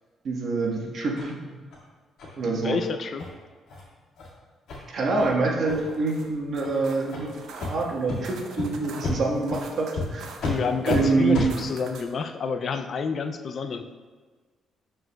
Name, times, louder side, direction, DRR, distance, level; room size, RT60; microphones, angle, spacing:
voice 1, 0.2-1.4 2.4-2.8 4.9-7.3 7.6-10.3 10.9-11.4, right 3 dB, 55° right, -1 dB, 1.3 m, -26 dB
sound 1, 1.2-1.3 1.7-1.8 2.2-2.3 2.7-2.8 3.2-3.3 3.7-3.8 4.2-4.3 4.7-4.8 5.2-5.3 5.7-6.0 6.6-6.7 7.1-7.2 7.6-7.7 8.1-8.2 8.6-8.7 9.0-9.2 9.5-9.6 10.0-10.1 10.4-10.5 10.9-11.0 11.3-11.5, left 3 dB, 75° left, 2.0 m, -31 dB
voice 2, 2.6-3.2 10.4-13.8, left 5 dB, 50° left, 8 dB, 0.4 m, -29 dB
sound 2, 5.8-12.2, right 4 dB, 80° right, 0.8 m, -45 dB
12.0 x 4.5 x 2.3 m, 1.4 s
cardioid pair, 90°, 0 cm